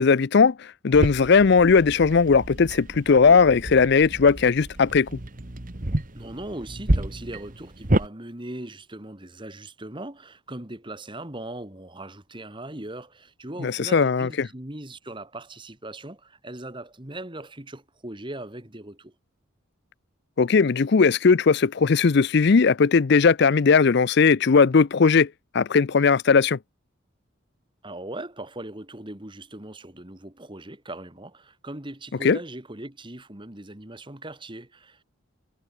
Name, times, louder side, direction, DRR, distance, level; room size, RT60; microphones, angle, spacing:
voice 1, 0.0-5.1 13.6-14.5 20.4-25.3 25.5-26.6 32.2-32.4, left 5 dB, 55° left, 0.5 m, -18 dB
sound 1, 0.9-8.1, right 1 dB, 40° right, 1.5 m, -30 dB
voice 2, 6.1-19.1 27.8-35.0, right 1 dB, 25° right, 2.0 m, -39 dB
head